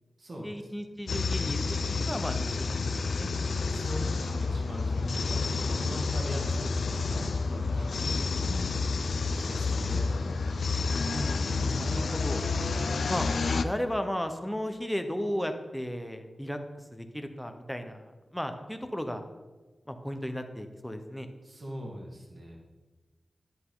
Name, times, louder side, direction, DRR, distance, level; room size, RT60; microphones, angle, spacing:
voice 1, 0.4-1.6 2.0-3.3 8.0-8.4 11.0-12.4 13.1-13.3 13.6-16.6 16.9-19.2 19.9-21.3, equal, 5° left, 6 dB, 1.0 m, -35 dB
sound 1, 1.1-13.6, left 4 dB, 80° left, 0.5 m, -29 dB
voice 2, 3.7-8.6 9.4-10.5 12.6-13.0 21.4-22.6, equal, 50° right, -2 dB, 2.0 m, -42 dB
10.5 x 8.5 x 3.9 m, 1.2 s
wide cardioid pair, 75°, 0 cm